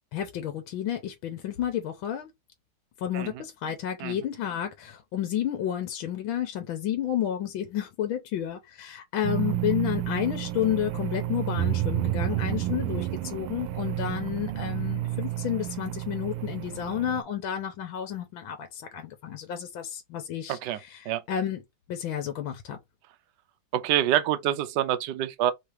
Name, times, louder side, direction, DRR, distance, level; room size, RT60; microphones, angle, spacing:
voice 1, 0.1-2.3 3.0-21.6 21.9-22.8, left 10 dB, 70° left, 1.5 m, -31 dB
sound 1, 9.2-17.2, right 14 dB, 90° right, 1.5 m, -30 dB
voice 2, 20.5-20.8 21.0-21.2 23.7-25.5, right 12 dB, 70° right, 1.1 m, -26 dB
3.7 x 2.8 x 4.8 m
omnidirectional pair, 2.3 m